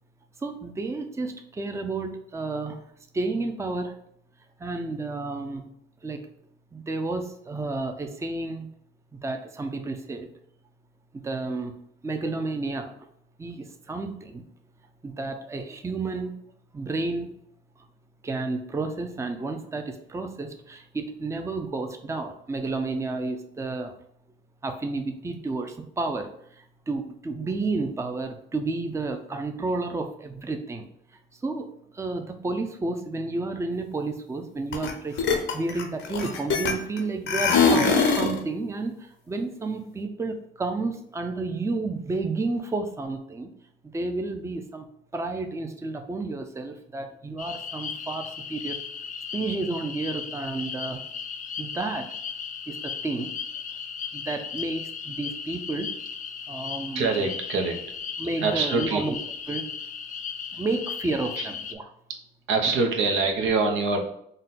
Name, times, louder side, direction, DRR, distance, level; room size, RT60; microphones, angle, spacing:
voice 1, 0.4-2.8 3.1-3.9 4.6-5.7 6.0-6.2 6.7-8.7 9.1-10.3 11.1-11.7 12.0-12.9 13.4-14.4 15.0-16.4 16.7-17.3 18.2-23.9 24.6-26.3 26.6-30.9 31.4-31.7 31.9-43.5 43.9-44.9 45.1-48.8 49.3-51.0 51.6-52.1 52.7-53.3 54.1-56.0 56.5-57.3 58.2-59.1 59.5-59.6 60.5-61.8, right 3 dB, 15° right, 6 dB, 0.4 m, -31 dB
sound 1, 34.7-34.9 35.2-37.0 37.3-38.4, left 5 dB, 75° left, 0.7 m, -22 dB
sound 2, 47.4-61.7, left 6 dB, 40° left, 0.4 m, -36 dB
voice 2, 56.9-57.8 58.4-59.0 60.5-60.6 61.4-61.5 62.5-64.0, right 4 dB, 85° right, 4 dB, 0.7 m, -24 dB
3.9 x 2.2 x 4.0 m, 0.70 s
cardioid pair, 90°, 20 cm